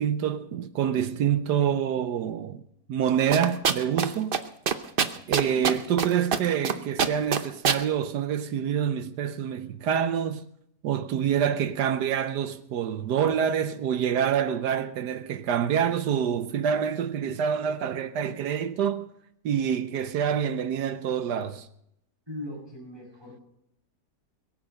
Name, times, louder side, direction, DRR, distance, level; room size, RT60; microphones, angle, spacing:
voice 1, 0.0-2.6 2.9-4.4 5.3-10.4 10.8-19.1 19.4-21.7, right 8 dB, 75° right, 1.3 m, -26 dB
sound 1, 3.3-4.1 4.3-4.4 4.7-6.1 6.3-6.7 7.0-7.8, right 6 dB, 50° right, 0.7 m, -23 dB
voice 2, 5.3-5.8 22.3-23.4, left 1 dB, 15° right, 6.1 m, -40 dB
22.0 x 7.8 x 6.4 m
omnidirectional pair, 1.9 m